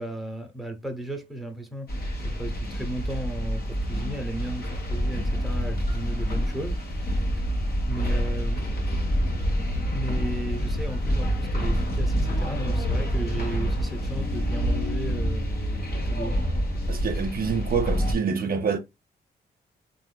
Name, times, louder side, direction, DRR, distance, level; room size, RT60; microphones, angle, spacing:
voice 1, 0.0-1.9 2.2-6.8 7.4-7.5 7.9-8.7 9.8-16.5, right 2 dB, ahead, 0.9 m, -35 dB
sound 1, 1.9-18.2, equal, 55° left, 1.0 m, -27 dB
sound 2, 10.5-17.2, right 1 dB, 30° left, 0.9 m, -42 dB
voice 2, 16.9-18.8, right 6 dB, 50° right, 0.6 m, -26 dB
3.4 x 2.5 x 2.2 m
supercardioid pair, 60°, 19 cm